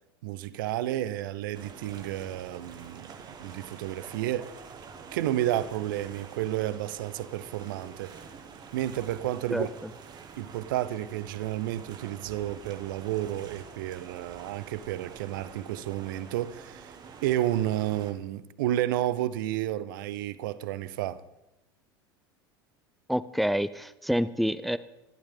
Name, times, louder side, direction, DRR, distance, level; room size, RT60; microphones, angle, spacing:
voice 1, 0.2-4.5 5.1-8.1 8.7-9.7 10.4-21.2, right 13 dB, 60° right, 0.8 m, -31 dB
sound 1, 1.5-18.1, right 5 dB, 35° right, 1.8 m, -47 dB
voice 2, 9.5-9.9 23.1-24.8, equal, ahead, 0.5 m, -28 dB
26.0 x 11.5 x 3.7 m
figure-of-eight pair, 80°, 12 cm